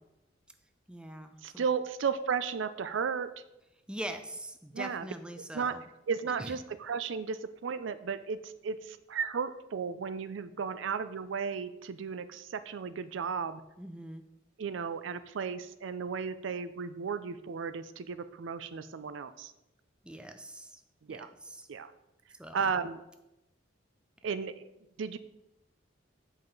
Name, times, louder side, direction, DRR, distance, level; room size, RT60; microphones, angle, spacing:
voice 1, 0.9-1.6 3.9-5.8 6.4-6.6 13.8-14.2 20.0-20.8 21.1-21.7 22.4-22.7, right 1 dB, 5° right, 7 dB, 0.4 m, -43 dB
voice 2, 1.4-3.3 4.7-5.1 5.5-5.8 6.1-13.6 14.6-19.5 21.1-21.3 21.7-21.9 22.5-23.0 24.2-24.7 25.0-25.2, right 6 dB, 65° right, 13 dB, 0.4 m, -34 dB
7.4 x 5.5 x 3.9 m, 0.91 s
head